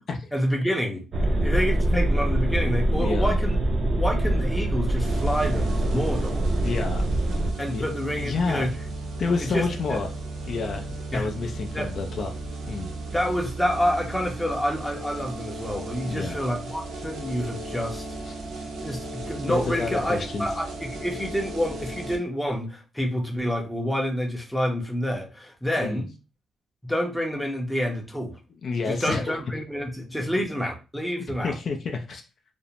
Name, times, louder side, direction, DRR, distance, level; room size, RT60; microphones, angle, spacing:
voice 1, 0.3-1.0 1.4-3.6 4.0-6.5 7.6-8.7 9.4-10.0 11.1-11.3 11.7-11.9 13.1-18.0 18.8-26.1 26.9-28.4 28.9-31.5, equal, 5° left, 0.6 m, -28 dB
sound 1, 1.1-7.5, right 1 dB, 50° right, 0.5 m, -24 dB
voice 2, 2.9-3.4 6.6-7.2 7.6-7.9 8.2-8.7 9.2-10.2 10.5-12.3 12.6-12.9 16.0-16.4 18.3-18.4 19.5-20.5 25.8-26.0 28.6-29.4 31.4-32.2, left 4 dB, 50° left, 0.3 m, -29 dB
sound 2, 5.0-22.2, right 2 dB, 85° right, 0.7 m, -36 dB
2.5 x 2.0 x 2.8 m
cardioid pair, 135°, 0 cm